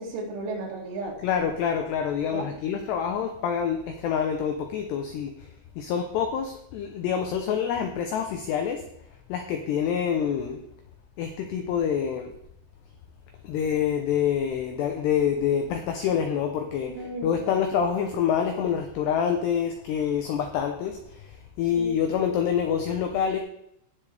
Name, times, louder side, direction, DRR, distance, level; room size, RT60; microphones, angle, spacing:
voice 1, 0.0-1.2 2.3-2.5 16.9-17.5 21.7-22.0, right 2 dB, 85° right, -2 dB, 5.6 m, -34 dB
voice 2, 1.2-5.5 5.8-8.8 9.3-10.6 11.2-12.3 13.4-23.4, left 8 dB, 85° left, 5 dB, 2.4 m, -26 dB
17.5 x 7.3 x 3.4 m, 0.79 s
omnidirectional pair, 6.0 m